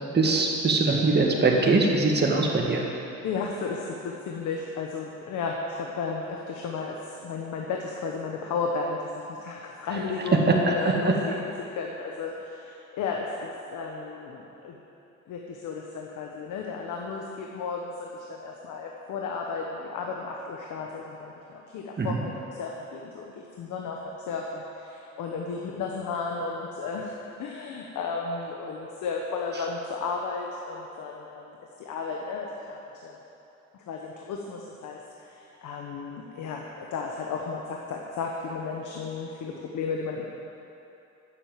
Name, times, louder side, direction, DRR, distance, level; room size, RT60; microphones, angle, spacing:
voice 1, 0.1-2.8 10.7-10.8 11.0-11.1 22.0-22.2, right 3 dB, 35° right, -1 dB, 1.8 m, -22 dB
voice 2, 3.2-11.4 11.8-14.8 15.3-33.2 33.9-35.0 35.3-40.3, left 4 dB, 80° left, -1 dB, 1.2 m, -34 dB
10.5 x 7.8 x 7.8 m, 2.9 s
cardioid pair, 90°, 30 cm